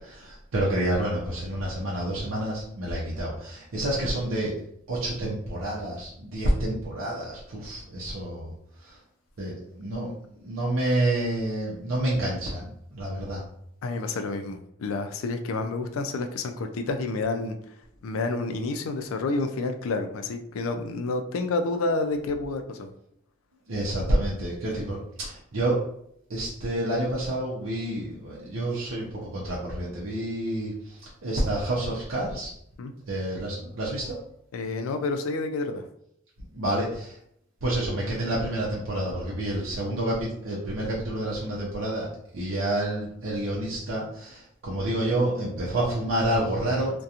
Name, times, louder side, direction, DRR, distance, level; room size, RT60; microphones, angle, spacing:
voice 1, 0.0-4.5 4.9-8.5 8.8-9.0 9.4-10.1 10.4-13.4 23.7-25.9 26.3-32.5 33.1-34.2 36.5-37.2 37.6-42.1 42.3-47.0, right 1 dB, 75° right, -5 dB, 0.6 m, -28 dB
voice 2, 13.8-17.6 18.0-22.9 32.8-32.9 34.5-35.8, left 3 dB, 85° left, 6 dB, 0.4 m, -29 dB
2.7 x 2.2 x 2.4 m, 0.71 s
head